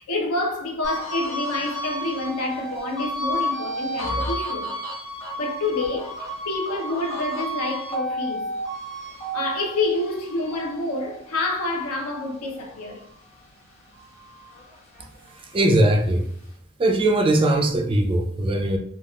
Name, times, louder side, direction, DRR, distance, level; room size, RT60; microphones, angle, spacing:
voice 1, 0.1-4.7 5.4-8.5 9.3-13.0, left 2 dB, 80° left, 0.7 m, -28 dB
washington siren, 0.8-13.5 13.9-15.5, equal, 30° left, 0.9 m, -32 dB
voice 2, 15.3-16.3 16.8-18.8, right 1 dB, 25° right, 0.3 m, -20 dB
3.4 x 2.3 x 2.3 m
head